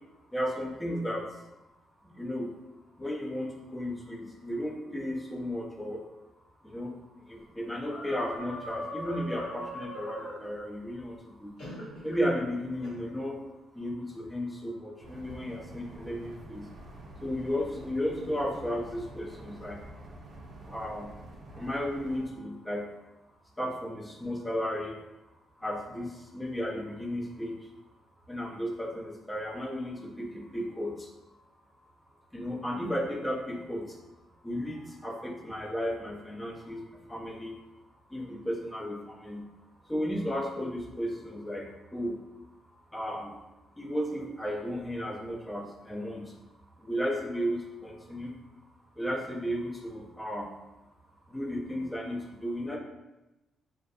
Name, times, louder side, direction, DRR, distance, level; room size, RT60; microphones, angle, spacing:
voice 1, 0.3-1.2 2.2-2.5 3.0-6.0 6.7-6.9 7.6-11.2 11.4-11.5 12.0-13.4 13.8-16.6 17.2-19.8 20.7-21.1 21.6-22.8 23.6-24.9 25.6-27.5 28.3-30.9 32.3-33.8 34.4-36.8 37.1-37.5 38.1-39.4 39.9-41.6 41.9-42.2 42.9-43.3 43.8-46.2 46.9-48.3 49.0-50.5 51.3-52.8, equal, 10° left, 0 dB, 0.5 m, -34 dB
sound 1, 7.8-10.4 11.6-12.2 12.8-13.0, equal, 75° left, 1.1 m, -40 dB
sound 2, 15.0-22.3, right 1 dB, 50° right, 0.4 m, -47 dB
2.5 x 2.3 x 2.3 m, 0.99 s
cardioid pair, 90°, 0 cm